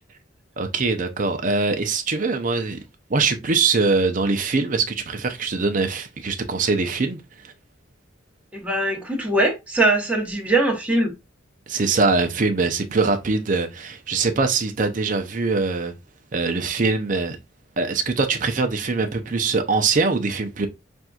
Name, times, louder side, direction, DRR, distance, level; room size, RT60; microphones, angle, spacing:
voice 1, 0.6-2.8 3.1-7.5 11.7-15.9 16.3-17.4 17.8-20.7, right 4 dB, 40° right, 0.5 m, -22 dB
voice 2, 8.5-11.1, right 2 dB, 5° right, 1.0 m, -21 dB
5.8 x 2.6 x 2.3 m
head